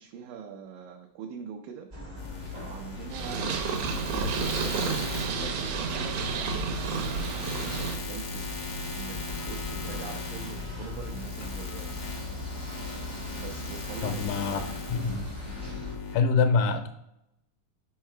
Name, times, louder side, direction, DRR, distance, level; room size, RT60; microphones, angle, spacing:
voice 1, 0.0-1.9 2.7-7.1 7.9-8.5 8.9-11.9 13.3-14.6, right 7 dB, 90° right, 1 dB, 2.3 m, -43 dB
sound 1, 1.9-16.0, left 1 dB, 40° right, 0.6 m, -40 dB
sound 2, 2.2-16.2, left 5 dB, 70° left, 1.1 m, -38 dB
Purr, 3.1-8.0, right 5 dB, 70° right, 2.1 m, -31 dB
voice 2, 14.0-14.6 14.9-15.3 16.1-16.9, left 5 dB, 85° left, 6 dB, 2.2 m, -25 dB
5.6 x 4.8 x 4.4 m, 0.81 s
omnidirectional pair, 3.8 m